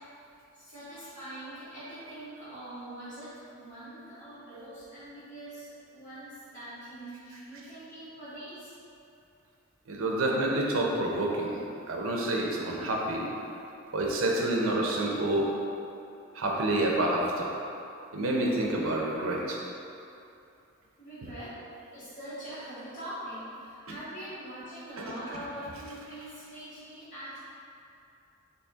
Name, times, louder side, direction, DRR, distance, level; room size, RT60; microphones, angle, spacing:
voice 1, 0.6-8.7 21.0-21.5 21.9-27.4, right 1 dB, 40° left, -16 dB, 1.5 m, -43 dB
voice 2, 9.9-13.3 13.9-15.5 16.3-17.5 18.1-19.6 23.9-24.0 25.0-25.1, right 1 dB, 90° right, -1 dB, 0.6 m, -28 dB
4.1 x 2.8 x 3.5 m, 2.7 s
head